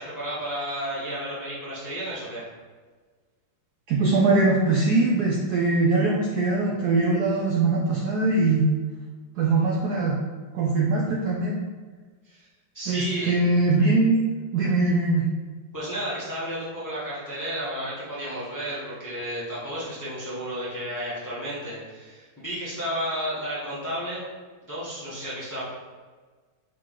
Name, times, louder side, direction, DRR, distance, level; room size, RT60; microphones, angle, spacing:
voice 1, 0.0-2.5 12.2-12.5 12.7-13.3 15.7-24.3 24.7-25.7, equal, 15° left, -9 dB, 0.6 m, -32 dB
voice 2, 3.9-8.7 9.4-10.2 10.5-11.6 12.9-14.2 14.5-15.3, right 3 dB, 90° right, -3 dB, 0.8 m, -22 dB
4.8 x 3.0 x 3.7 m, 1.4 s
omnidirectional pair, 2.3 m